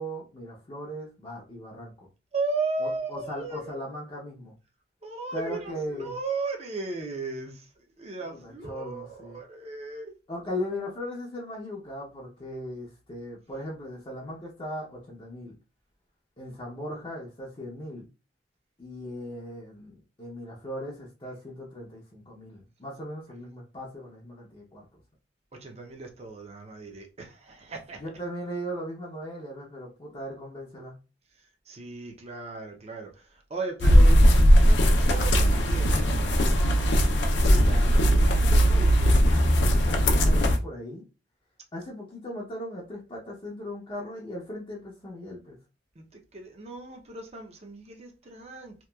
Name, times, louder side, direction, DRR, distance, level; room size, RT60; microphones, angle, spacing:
voice 1, 0.0-2.1 2.8-4.5 5.3-6.1 8.2-9.4 10.3-15.5 16.4-18.1 18.8-24.9 27.9-31.0 37.3-41.1 41.7-45.6, equal, 30° left, 0.5 m, -38 dB
voice 2, 2.3-3.8 5.0-7.7 8.0-10.1 25.5-28.0 31.7-36.6 46.0-48.7, right 3 dB, 35° right, 0.6 m, -36 dB
sound 1, 33.8-40.6, equal, 75° left, 0.5 m, -19 dB
2.9 x 2.3 x 2.2 m
head